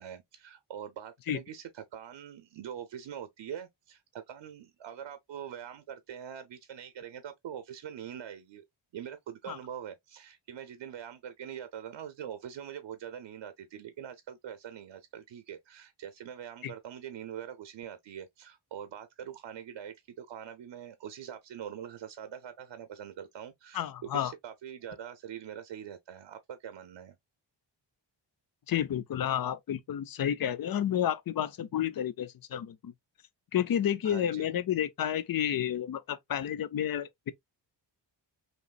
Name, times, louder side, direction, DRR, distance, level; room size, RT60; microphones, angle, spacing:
voice 1, 0.0-8.6 8.9-27.2 34.0-34.5, right 9 dB, 80° right, 0.7 m, -43 dB
voice 2, 23.7-24.3 28.7-32.9 33.5-37.3, left 10 dB, 50° left, 0.6 m, -31 dB
5.4 x 3.1 x 2.4 m
wide cardioid pair, 135°, 45 cm